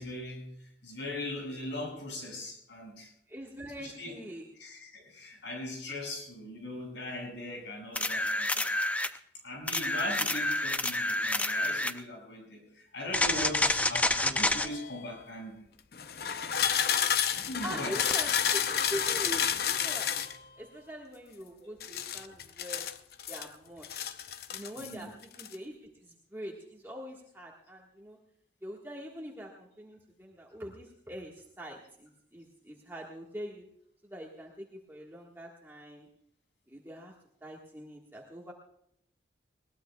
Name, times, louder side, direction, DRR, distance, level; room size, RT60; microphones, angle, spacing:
voice 1, 0.0-3.1 3.8-4.1 4.6-8.7 9.4-15.6 17.3-18.0 21.9-22.0 24.7-25.1, left 1 dB, 80° left, 0 dB, 6.5 m, -40 dB
voice 2, 3.3-4.5 17.6-20.1 20.6-22.9 23.3-24.2 24.5-25.1 25.4-25.7 26.0-28.2 28.6-33.7 34.0-36.1 36.7-37.1 37.4-38.5, equal, 10° right, -2 dB, 1.5 m, -43 dB
sound 1, 8.0-9.2 9.7-12.0 13.1-14.7 18.1-18.2, left 2 dB, 10° left, 0.4 m, -28 dB
sound 2, 13.2-15.1 15.9-20.4 21.8-23.5 23.8-24.9 25.2-25.5, left 8 dB, 55° left, 0.7 m, -31 dB
21.0 x 18.5 x 2.3 m, 0.70 s
head